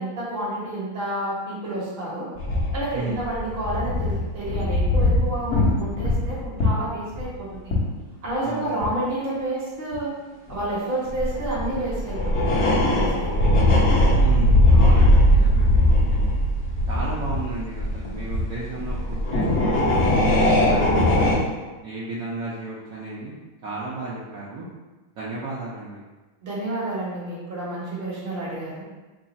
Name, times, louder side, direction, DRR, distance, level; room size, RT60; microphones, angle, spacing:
voice 1, 0.0-2.3 2.7-7.8 8.2-10.2 10.5-13.3 26.4-28.8, right 1 dB, 40° right, -6 dB, 0.8 m, -30 dB
sound 1, 2.4-8.0 8.3-8.4 8.8-8.9 9.9-10.0 10.5-10.6 11.0-21.4, left 1 dB, 55° left, 0.8 m, -20 dB
voice 2, 8.4-8.8 14.2-16.4 16.9-20.1 20.7-21.5 21.8-23.4 23.6-24.6 25.2-26.0, right 2 dB, 75° right, -7 dB, 0.8 m, -33 dB
3.4 x 2.3 x 3.9 m, 1.2 s
omnidirectional pair, 2.2 m